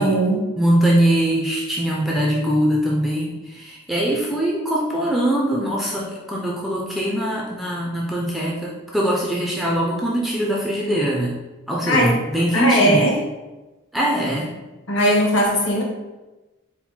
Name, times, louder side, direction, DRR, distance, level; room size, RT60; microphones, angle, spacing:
voice 1, 0.0-0.4 11.8-12.2 12.5-13.1 14.9-15.8, equal, 55° left, 0 dB, 0.9 m, -18 dB
voice 2, 0.6-11.3 11.7-13.1 13.9-14.5, right 1 dB, ahead, -4 dB, 0.3 m, -22 dB
4.3 x 2.1 x 4.2 m, 1.1 s
head